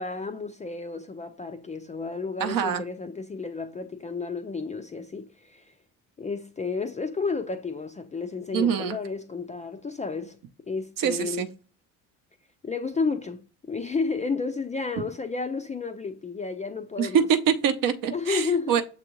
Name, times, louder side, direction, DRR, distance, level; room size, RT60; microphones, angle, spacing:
voice 1, 0.0-5.7 6.2-10.4 10.7-11.5 12.6-17.2 18.1-18.8, left 4 dB, 20° left, 0.4 m, -31 dB
voice 2, 2.4-2.8 8.5-9.0 11.0-11.5 17.0-18.8, right 8 dB, 50° right, 0.7 m, -24 dB
6.7 x 2.4 x 3.0 m
hypercardioid pair, 60°, 42 cm